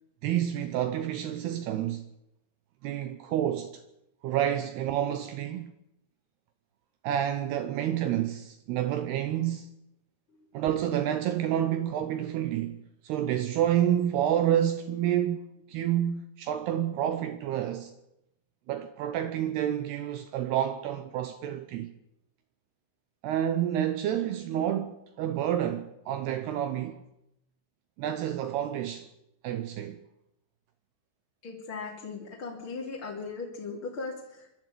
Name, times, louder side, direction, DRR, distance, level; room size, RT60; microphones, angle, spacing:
voice 1, 0.2-2.0 2.8-3.8 4.2-5.7 7.0-9.7 10.5-17.9 18.7-21.9 23.2-27.0 28.0-29.1 29.4-30.0, right 11 dB, 75° right, 2.5 m, -29 dB
voice 2, 31.4-34.5, left 4 dB, 30° left, 3.2 m, -38 dB
25.0 x 12.5 x 8.5 m
omnidirectional pair, 5.6 m